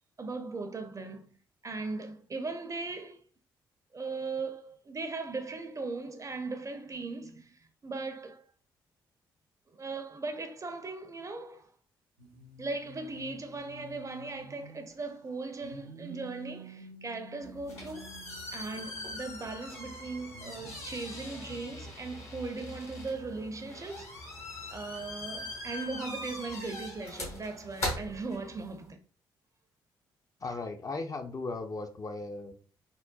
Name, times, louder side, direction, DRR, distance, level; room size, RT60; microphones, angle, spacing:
voice 1, 0.2-1.3 1.6-3.2 3.9-8.4 9.7-11.7 12.6-18.2 18.5-24.2 24.7-29.0, right 3 dB, 30° right, 0.5 m, -38 dB
sound 1, 12.2-15.3 15.6-19.5 20.3-21.9, right 2 dB, 80° right, 0.5 m, -50 dB
sound 2, 17.4-28.9, left 2 dB, 70° left, 1.1 m, -41 dB
voice 2, 30.4-32.5, left 3 dB, 30° left, 0.4 m, -37 dB
3.7 x 2.1 x 2.2 m
figure-of-eight pair, 40°, 11 cm